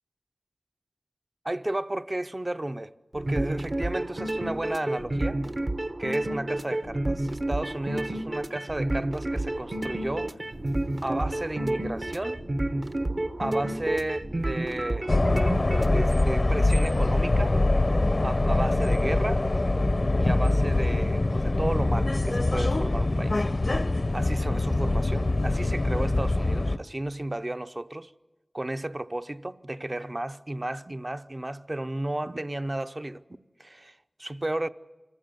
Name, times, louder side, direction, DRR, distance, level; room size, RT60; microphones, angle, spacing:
voice 1, 1.4-5.6 6.0-10.4 11.0-12.4 13.4-15.1 15.9-17.6 18.2-19.4 20.2-23.5 24.1-28.1 28.5-33.2 33.6-34.7, right 1 dB, 40° right, 0.6 m, -33 dB
sound 1, 3.1-16.0, right 1 dB, 55° right, 1.0 m, -30 dB
sound 2, 9.5-26.1, right 1 dB, 80° right, 2.7 m, -49 dB
sound 3, 15.1-26.8, left 2 dB, 55° left, 0.7 m, -24 dB
25.0 x 15.0 x 9.3 m
wide cardioid pair, 45°, 0 cm